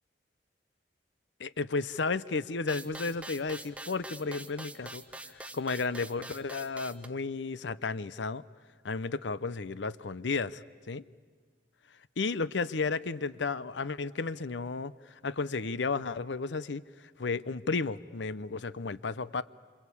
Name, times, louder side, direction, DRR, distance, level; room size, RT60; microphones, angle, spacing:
voice 1, 1.4-5.0 5.3-8.4 8.8-11.0 12.2-14.9 15.2-16.8 17.2-19.4, left 4 dB, 80° left, 17 dB, 0.7 m, -33 dB
sound 1, 2.7-7.1, right 1 dB, 5° right, 0.8 m, -44 dB
26.5 x 26.0 x 8.5 m, 1.5 s
head